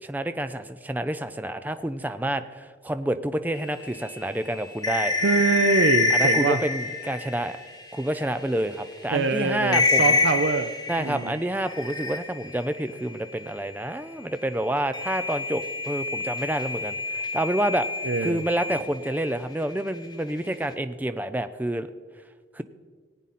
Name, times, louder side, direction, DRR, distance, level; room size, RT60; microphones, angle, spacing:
voice 1, 0.0-5.1 6.1-7.6 7.9-10.2 10.9-17.9 18.2-21.9 22.5-22.6, right 1 dB, 10° right, 10 dB, 0.4 m, -28 dB
sound 1, 3.8-8.2 8.7-8.8 9.2-9.3 9.7-12.6 14.9-19.3, left 3 dB, 20° left, 1.0 m, -26 dB
voice 2, 5.2-6.6 9.1-10.7 11.0-11.4 18.0-18.4, right 4 dB, 70° right, 8 dB, 0.5 m, -24 dB
19.0 x 8.9 x 4.2 m, 1.5 s
head